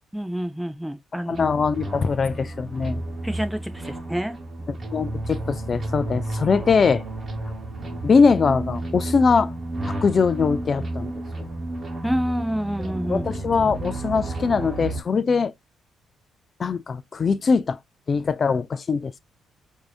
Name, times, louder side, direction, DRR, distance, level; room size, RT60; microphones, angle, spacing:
voice 1, 0.1-1.5 3.2-4.3 12.0-13.3, equal, 5° right, 0.6 m, -28 dB
voice 2, 1.3-3.0 4.7-7.0 8.0-9.5 9.9-11.1 11.4-11.5 12.8-15.5 16.6-17.8 18.1-19.2, left 5 dB, 40° left, 0.4 m, -22 dB
sound 1, 1.4-15.0, right 1 dB, 35° right, 1.2 m, -31 dB
4.7 x 2.7 x 2.4 m
cardioid pair, 90°, 0 cm